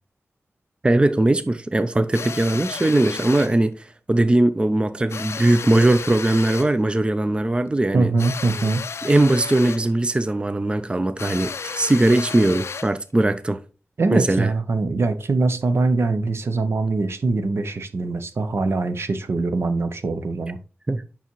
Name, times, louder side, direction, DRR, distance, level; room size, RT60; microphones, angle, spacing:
voice 1, 0.8-8.1 9.0-13.6 14.1-14.5 20.9-21.0, right 2 dB, 25° right, 0.4 m, -20 dB
sound 1, 2.1-3.6 5.1-6.8 8.2-9.9 11.2-13.0, left 5 dB, 80° left, 0.4 m, -33 dB
voice 2, 7.9-8.8 14.0-20.6, right 3 dB, 70° right, 0.7 m, -22 dB
7.0 x 5.7 x 3.0 m
wide cardioid pair, 75°, 5 cm